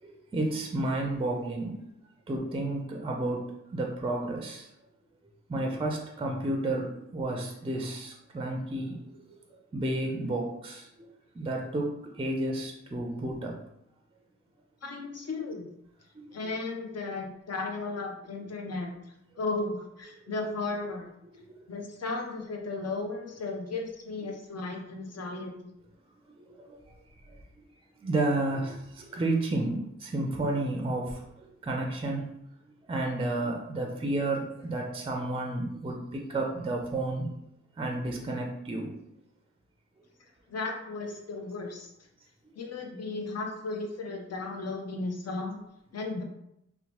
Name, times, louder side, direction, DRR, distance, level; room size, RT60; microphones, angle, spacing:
voice 1, 0.0-1.8 2.3-4.7 5.5-9.4 9.7-10.9 11.3-13.6 16.2-16.4 20.2-20.3 21.5-21.6 26.4-26.8 28.0-32.3 32.9-37.3 37.8-39.0, right 2 dB, 20° right, 1 dB, 0.4 m, -31 dB
voice 2, 14.8-15.7 16.3-18.9 19.4-21.1 21.7-25.7 40.5-41.9 42.6-45.6 45.9-46.2, left 3 dB, 55° left, 2 dB, 0.6 m, -35 dB
2.9 x 2.0 x 2.9 m, 0.79 s
wide cardioid pair, 70°, 30 cm